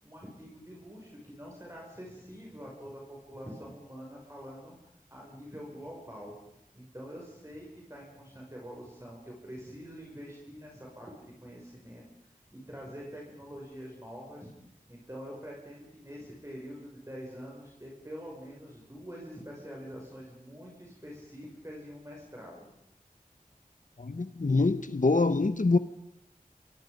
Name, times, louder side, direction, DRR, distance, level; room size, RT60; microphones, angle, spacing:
voice 1, 0.0-4.7 5.1-6.4 6.7-14.5 14.9-22.7, equal, 20° right, 6.7 m, -45 dB
voice 2, 24.0-25.8, left 3 dB, 60° left, 1.0 m, -25 dB
27.5 x 23.5 x 5.4 m
wide cardioid pair, 50°, 15 cm